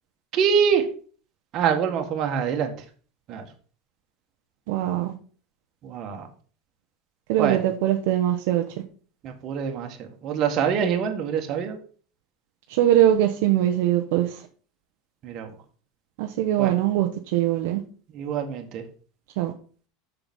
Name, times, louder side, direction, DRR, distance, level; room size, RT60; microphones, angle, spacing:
voice 1, 0.3-0.8 1.5-2.7 3.3-3.4 5.8-6.3 7.4-7.6 9.2-11.8 15.2-15.5 16.6-16.7 18.1-18.8, right 7 dB, 40° right, 1.8 m, -25 dB
voice 2, 4.7-5.1 7.3-8.6 12.7-14.4 16.2-17.8 19.4-19.5, right 12 dB, 65° right, 0.9 m, -22 dB
7.1 x 5.9 x 5.4 m
supercardioid pair, 145°, 0 cm